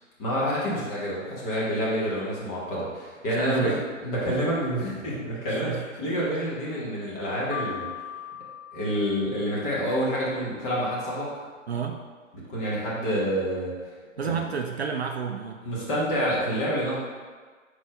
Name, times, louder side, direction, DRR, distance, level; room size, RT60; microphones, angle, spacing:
voice 1, 0.2-5.7 6.0-7.9 8.7-11.4 12.5-13.7 14.2-14.4 15.6-17.0, equal, 15° left, -6 dB, 1.1 m, -28 dB
voice 2, 3.4-3.8 5.6-5.8 11.7-12.0 14.2-15.6, right 6 dB, 55° right, 4 dB, 0.5 m, -30 dB
Piano, 7.5-9.7, left 7 dB, 65° left, 1.1 m, -38 dB
4.6 x 4.2 x 4.8 m, 1.5 s
figure-of-eight pair, 135°, 40 cm